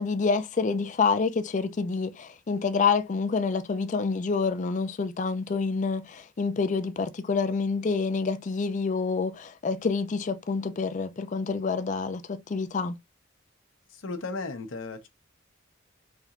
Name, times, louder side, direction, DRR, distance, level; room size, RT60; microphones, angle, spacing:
voice 1, 0.0-13.0, left 4 dB, 40° left, 0.4 m, -27 dB
voice 2, 13.9-15.1, left 3 dB, 80° left, 0.8 m, -35 dB
3.3 x 2.9 x 2.4 m
head